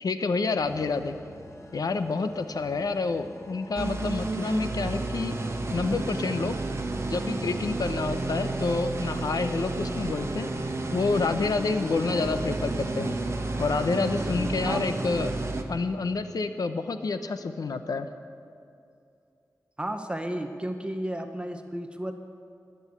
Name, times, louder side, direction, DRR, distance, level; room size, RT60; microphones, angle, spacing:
voice 1, 0.0-1.2 1.7-5.4 5.7-6.6 7.1-10.5 10.9-13.2 13.6-15.3 15.7-18.1, left 4 dB, 85° left, 9 dB, 0.7 m, -28 dB
sound 1, 0.6-14.3, left 2 dB, 50° left, 1.2 m, -48 dB
sound 2, 3.8-15.6, right 2 dB, 45° right, 1.3 m, -31 dB
voice 2, 19.8-22.1, right 1 dB, 15° right, 6 dB, 0.8 m, -33 dB
21.0 x 7.9 x 8.4 m, 2.5 s
wide cardioid pair, 95°, 6 cm